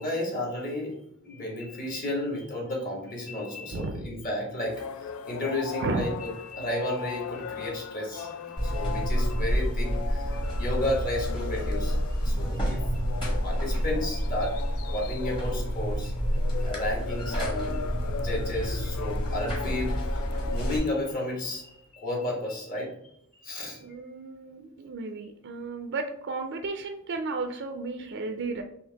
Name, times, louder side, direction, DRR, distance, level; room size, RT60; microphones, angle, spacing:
voice 1, 0.0-4.8 5.2-12.8 13.4-14.5 14.9-16.1 16.6-17.9 18.1-19.9 20.5-22.9 23.4-24.0, left 1 dB, 40° left, -2 dB, 1.4 m, -32 dB
voice 2, 3.7-4.1 5.8-6.1 12.3-12.6 23.8-28.6, right 3 dB, 55° right, 5 dB, 0.4 m, -33 dB
sound 1, 4.6-21.7, left 6 dB, 80° left, 0.3 m, -39 dB
Buzz, 8.6-20.8, equal, 25° left, 1.2 m, -29 dB
4.5 x 3.0 x 3.4 m, 0.72 s
head